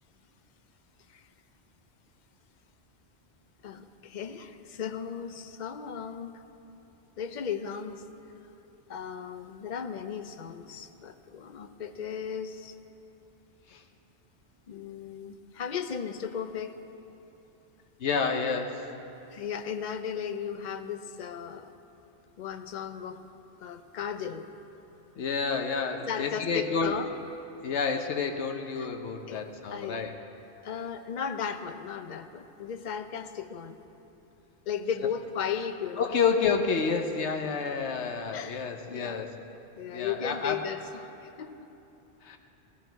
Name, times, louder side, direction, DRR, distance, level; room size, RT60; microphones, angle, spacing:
voice 1, 3.6-6.4 7.2-8.0 8.9-12.8 14.7-16.8 19.3-21.7 22.4-23.2 23.6-24.5 26.1-27.1 28.8-28.9 29.3-29.4 29.7-30.0 30.6-33.8 34.7-36.2 38.3-39.2 39.8-41.7, left 7 dB, 50° left, 9 dB, 0.7 m, -36 dB
voice 2, 18.0-18.9 25.2-26.9 27.6-30.1 36.0-39.3 39.9-40.6 42.2-42.4, left 5 dB, 90° left, 4 dB, 1.1 m, -29 dB
16.0 x 13.5 x 4.5 m, 3.0 s
omnidirectional pair, 1.1 m